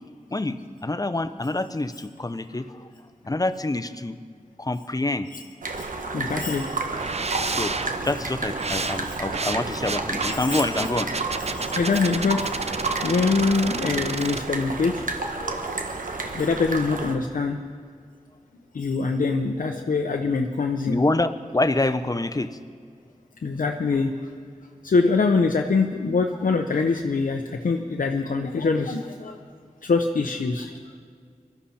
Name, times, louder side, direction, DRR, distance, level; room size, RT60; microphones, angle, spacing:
voice 1, 0.3-2.9 3.3-4.2 4.6-5.3 7.5-7.8 8.0-11.1 11.6-11.7 15.4-15.7 16.0-16.1 19.7-19.9 20.9-22.6, left 2 dB, 25° left, 11 dB, 0.8 m, -27 dB
sound 1, 5.6-17.2, right 3 dB, 85° right, 1.3 m, -31 dB
voice 2, 6.1-6.8 8.6-9.1 10.4-10.7 11.5-12.5 13.0-14.9 16.3-17.6 18.7-21.0 23.4-24.1 24.8-29.4 29.8-30.7, left 4 dB, 90° left, 3 dB, 0.8 m, -24 dB
sound 2, 6.9-14.4, right 4 dB, 50° right, 0.7 m, -31 dB
23.0 x 13.0 x 4.3 m, 2.1 s
wide cardioid pair, 50°, 13 cm